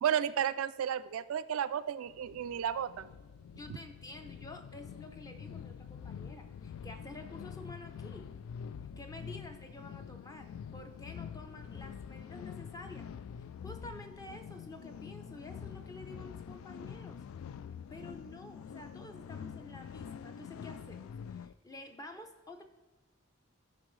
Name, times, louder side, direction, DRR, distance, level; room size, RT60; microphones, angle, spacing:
voice 1, 0.0-3.1, right 9 dB, 80° right, 13 dB, 0.3 m, -32 dB
sound 1, 2.1-21.5, left 7 dB, 80° left, 0.3 m, -46 dB
voice 2, 3.6-8.3 9.0-13.1 13.6-17.2 17.9-22.6, left 1 dB, 15° left, 6 dB, 0.6 m, -50 dB
12.5 x 5.2 x 3.2 m, 1.2 s
head